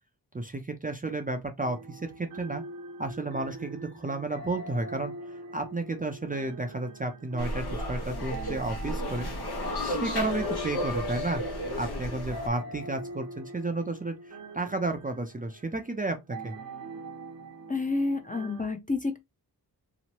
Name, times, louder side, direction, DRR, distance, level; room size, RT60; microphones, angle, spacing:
voice 1, 0.3-2.6 3.0-5.1 5.5-9.3 9.8-11.4 11.8-16.5, right 2 dB, 20° right, 0.5 m, -32 dB
sound 1, 1.6-18.6, right 2 dB, 60° right, 0.8 m, -43 dB
sound 2, 7.4-12.5, left 1 dB, 75° left, 0.9 m, -33 dB
voice 2, 17.7-19.2, left 3 dB, 20° left, 0.6 m, -29 dB
3.0 x 2.0 x 2.9 m
cardioid pair, 40°, 39 cm